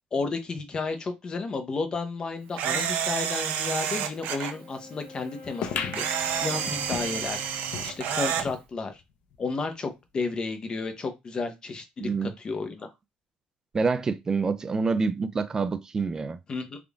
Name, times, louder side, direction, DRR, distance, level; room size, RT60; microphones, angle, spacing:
voice 1, 0.1-7.4 7.8-9.0 9.4-12.9 16.5-16.8, left 4 dB, 30° left, 0.7 m, -32 dB
Camera, 2.6-4.5 5.9-8.5, right 8 dB, 70° right, 0.6 m, -29 dB
Wind instrument woodwind instrument, 4.0-8.3, left 3 dB, 90° left, 1.6 m, -45 dB
sound 1, 5.6-8.6 9.0-9.1 9.3-9.4 10.2-10.3, left 7 dB, 70° left, 0.6 m, -37 dB
voice 2, 12.0-12.3 13.7-16.4, right 4 dB, 20° right, 0.3 m, -27 dB
3.6 x 2.5 x 3.4 m
cardioid pair, 150°, 3 cm